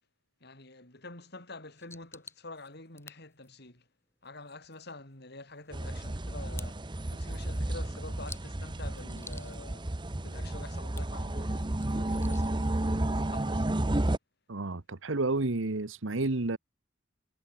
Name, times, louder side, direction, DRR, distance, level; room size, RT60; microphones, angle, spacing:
voice 1, 0.4-3.8 4.2-9.9 10.2-13.7, left 2 dB, 60° left, 6.0 m, -47 dB
sound 1, 1.8-12.9, left 3 dB, 15° left, 4.5 m, -55 dB
sound 2, 5.7-14.2, right 1 dB, 25° right, 0.9 m, -32 dB
voice 2, 14.5-16.6, right 2 dB, 90° right, 1.3 m, -30 dB
head